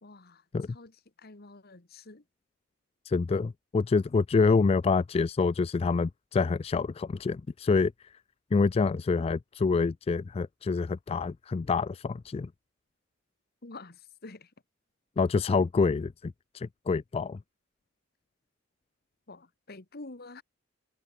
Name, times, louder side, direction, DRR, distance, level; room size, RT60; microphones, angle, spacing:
voice 1, 0.0-2.2 13.6-14.5 19.3-20.4, left 3 dB, 55° left, 1.7 m, -48 dB
voice 2, 3.1-8.1 8.5-12.5 15.2-17.4, left 4 dB, 30° left, 0.3 m, -27 dB
head